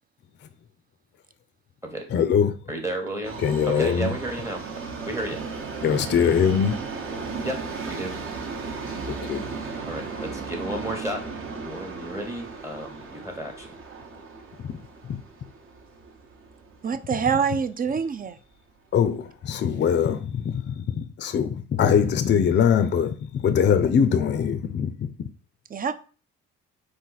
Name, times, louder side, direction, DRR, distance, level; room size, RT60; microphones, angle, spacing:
voice 1, 2.1-2.6 3.4-4.1 5.8-6.8 9.3-9.5 14.6-14.8 15.0-15.2 18.9-25.1, left 7 dB, 40° left, 0.4 m, -22 dB
voice 2, 2.7-3.4 3.7-4.6 5.0-5.4 7.4-8.2 9.8-11.2 11.6-13.7, right 1 dB, 10° right, 0.9 m, -32 dB
Subway metro underground, 3.2-17.4 17.7-17.8 18.6-18.7 19.0-19.1 19.7-19.8, right 4 dB, 45° right, 1.0 m, -36 dB
voice 3, 16.8-18.4 25.7-25.9, right 6 dB, 30° right, 0.4 m, -25 dB
4.1 x 2.7 x 3.9 m
cardioid pair, 90°, 30 cm